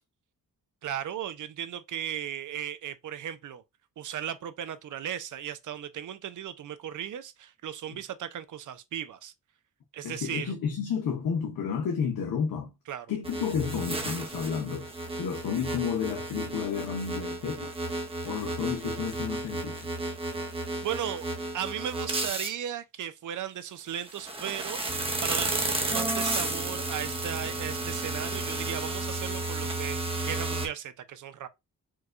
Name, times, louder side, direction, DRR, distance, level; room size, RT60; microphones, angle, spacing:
voice 1, 0.8-3.6 4.0-9.3 9.9-10.5 12.9-13.1 20.8-21.3 21.5-31.5, right 10 dB, 65° right, 0.5 m, -36 dB
voice 2, 10.0-12.7 13.1-14.9 15.2-17.7 18.2-19.9, left 7 dB, 85° left, 0.8 m, -31 dB
sound 1, 13.2-22.5 24.0-30.7, right 2 dB, 15° right, 0.7 m, -32 dB
4.6 x 2.2 x 2.4 m
cardioid pair, 105°, 34 cm